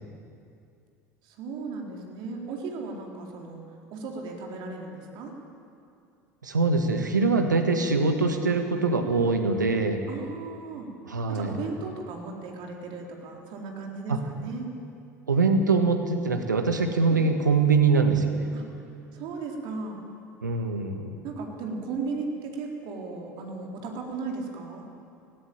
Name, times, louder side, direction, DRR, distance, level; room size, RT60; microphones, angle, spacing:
voice 1, 1.2-3.6 3.9-5.3 10.1-10.9 11.3-14.7 17.1-17.2 18.5-18.6 19.1-20.0 21.2-24.9, right 4 dB, 55° right, 1 dB, 4.1 m, -36 dB
voice 2, 6.4-10.0 11.1-11.6 14.1-14.2 15.3-18.4 20.4-21.1, right 4 dB, 85° right, 6 dB, 1.7 m, -23 dB
17.5 x 17.0 x 8.9 m, 2.5 s
figure-of-eight pair, 70°, 10 cm